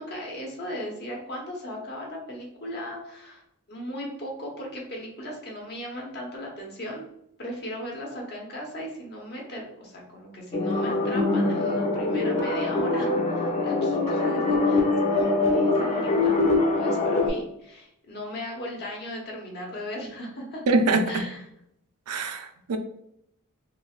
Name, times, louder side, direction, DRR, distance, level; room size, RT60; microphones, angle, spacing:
voice 1, 0.0-3.4 3.7-7.1 7.4-20.6 21.1-21.4, equal, 50° left, -1 dB, 1.0 m, -37 dB
sound 1, 10.5-17.3, left 2 dB, 30° left, 0.6 m, -23 dB
voice 2, 20.7-21.2 22.1-22.8, right 3 dB, 80° right, 7 dB, 0.5 m, -24 dB
3.8 x 2.9 x 2.4 m, 0.77 s
head